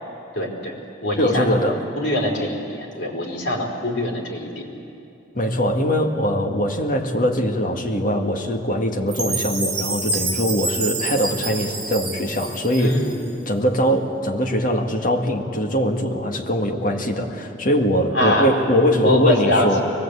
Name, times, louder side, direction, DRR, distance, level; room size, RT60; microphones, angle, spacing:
voice 1, 0.3-0.7 1.0-1.6 2.0-4.7 12.8-13.2 18.1-18.5 19.0-19.8, left 1 dB, 75° left, -2 dB, 4.6 m, -23 dB
voice 2, 1.1-1.8 5.3-13.1 13.5-19.8, equal, 45° left, 2 dB, 1.9 m, -21 dB
Chime, 9.1-13.3, right 3 dB, 40° right, 5.2 m, -28 dB
24.5 x 20.0 x 8.4 m, 2.7 s
head